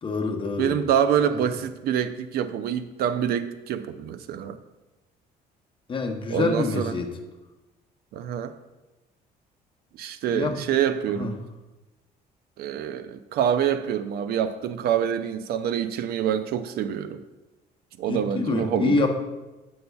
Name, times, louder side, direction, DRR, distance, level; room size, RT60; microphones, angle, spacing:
voice 1, 0.0-0.8 1.3-1.4 5.9-7.1 10.3-10.6 11.1-11.3 18.1-19.1, left 3 dB, 30° left, 3 dB, 0.8 m, -26 dB
voice 2, 0.6-4.6 6.3-6.9 8.1-8.5 10.0-11.4 12.6-17.2 18.0-19.0, right 9 dB, 65° right, 11 dB, 0.4 m, -26 dB
7.7 x 5.4 x 2.3 m, 1.1 s
cardioid pair, 110°, 17 cm